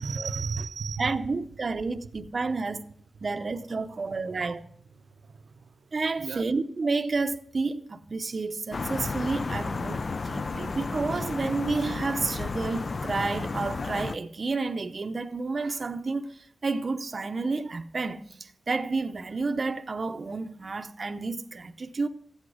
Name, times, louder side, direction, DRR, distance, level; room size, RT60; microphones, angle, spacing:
voice 1, 0.0-1.1 3.5-4.3 4.9-6.4 10.5-10.7, right 5 dB, 85° right, 0.6 m, -37 dB
voice 2, 1.0-2.8 3.2-4.6 5.9-22.1, right 3 dB, 45° right, 0.7 m, -30 dB
sound 1, 8.7-14.2, left 4 dB, 45° left, 0.4 m, -32 dB
14.5 x 8.5 x 4.9 m
wide cardioid pair, 120°, 0 cm